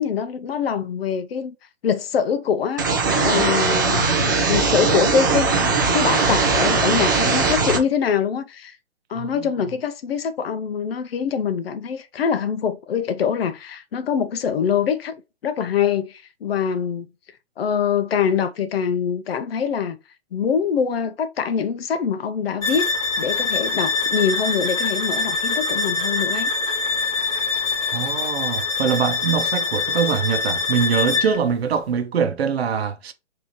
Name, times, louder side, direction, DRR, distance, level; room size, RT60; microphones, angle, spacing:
voice 1, 0.0-1.5 1.8-8.8 9.1-15.1 15.4-17.1 17.6-20.0 20.3-22.9 23.2-26.5, left 7 dB, 55° left, 0.6 m, -24 dB
sound 1, 2.8-7.8, right 4 dB, 20° right, 0.3 m, -19 dB
voice 2, 9.1-9.5 27.9-33.1, right 7 dB, 60° right, 0.8 m, -23 dB
sound 2, 22.6-31.4, left 4 dB, 10° left, 1.0 m, -24 dB
4.0 x 2.7 x 3.0 m
hypercardioid pair, 145°, 35 cm